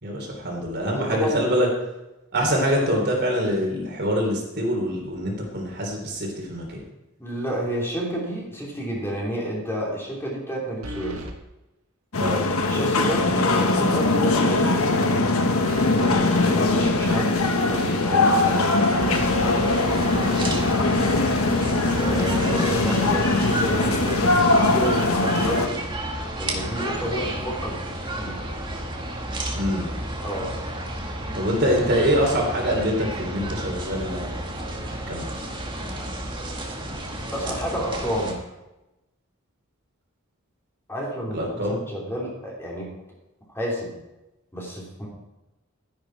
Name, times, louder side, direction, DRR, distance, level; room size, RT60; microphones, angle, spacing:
voice 1, 0.0-1.7 2.3-6.8 12.2-12.4 15.9-16.2 29.5-29.9 31.3-34.3 34.9-35.2 41.3-41.8, equal, 50° right, 0 dB, 3.3 m, -24 dB
voice 2, 0.8-1.5 7.2-11.2 12.7-14.9 16.1-17.3 17.6-18.6 19.1-19.6 22.0-25.9 26.4-27.8 28.1-28.4 30.2-30.5 37.3-38.4 40.9-42.9 43.5-43.9 44.5-45.1, equal, 10° left, -4 dB, 3.1 m, -30 dB
sound 1, 8.5-8.6 10.8-11.4 15.7-19.1, right 1 dB, 80° right, 1.5 m, -36 dB
sound 2, 12.1-25.7, left 2 dB, 75° left, 1.3 m, -21 dB
sound 3, 19.0-38.3, right 1 dB, 20° right, 1.8 m, -31 dB
12.0 x 10.5 x 4.7 m, 0.96 s
head